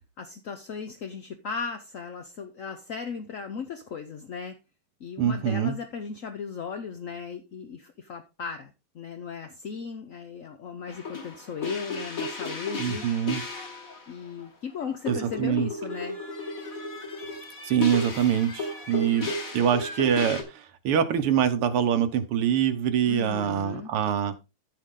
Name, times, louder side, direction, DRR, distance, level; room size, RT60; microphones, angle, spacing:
voice 1, 0.2-4.6 5.0-13.1 14.1-16.2 23.0-23.9, left 6 dB, 55° left, 0.9 m, -37 dB
voice 2, 5.2-5.8 12.8-13.4 15.1-15.7 17.6-24.4, right 8 dB, 80° right, 2.0 m, -25 dB
sound 1, 10.9-14.1 14.4-14.5 14.8-20.4, left 2 dB, 40° left, 2.2 m, -34 dB
14.5 x 4.8 x 3.7 m
omnidirectional pair, 2.4 m